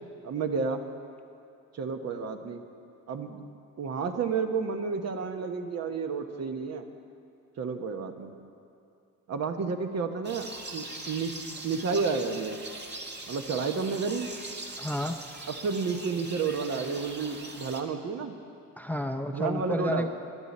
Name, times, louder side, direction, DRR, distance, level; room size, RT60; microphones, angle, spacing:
voice 1, 0.2-0.8 1.7-2.6 3.1-3.4 3.8-6.8 7.6-8.3 9.3-11.4 11.6-12.6 13.3-14.3 15.6-18.3 19.3-20.1, right 5 dB, 60° right, 6 dB, 1.1 m, -31 dB
sound 1, 10.2-17.8, right 2 dB, 35° right, 1.6 m, -41 dB
voice 2, 14.8-15.2 18.8-20.1, left 1 dB, 5° left, 7 dB, 0.5 m, -31 dB
20.5 x 11.0 x 4.3 m, 2.5 s
cardioid pair, 90°, 30 cm